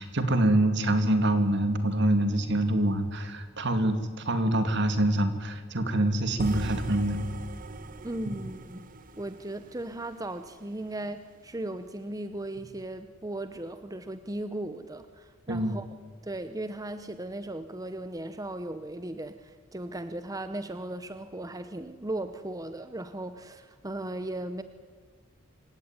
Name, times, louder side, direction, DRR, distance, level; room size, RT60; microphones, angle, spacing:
voice 1, 0.0-7.2 15.5-15.8, right 1 dB, 60° right, 8 dB, 2.7 m, -25 dB
sound 1, 6.4-10.5, right 2 dB, 45° right, 1.2 m, -40 dB
voice 2, 8.0-8.9 9.2-15.9 16.2-24.6, right 1 dB, 20° right, 10 dB, 0.9 m, -37 dB
26.5 x 16.5 x 9.7 m, 1.6 s
head